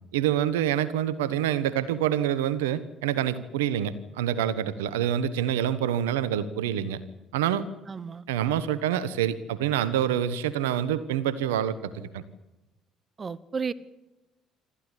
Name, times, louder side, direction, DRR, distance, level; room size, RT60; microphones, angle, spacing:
voice 1, 0.1-7.0 7.3-7.6 8.3-12.2, right 10 dB, 90° right, 16 dB, 1.2 m, -26 dB
voice 2, 7.9-8.2 13.2-13.7, right 5 dB, 40° right, 19 dB, 1.1 m, -32 dB
26.5 x 14.5 x 10.0 m, 1.0 s
hypercardioid pair, 60°, 0 cm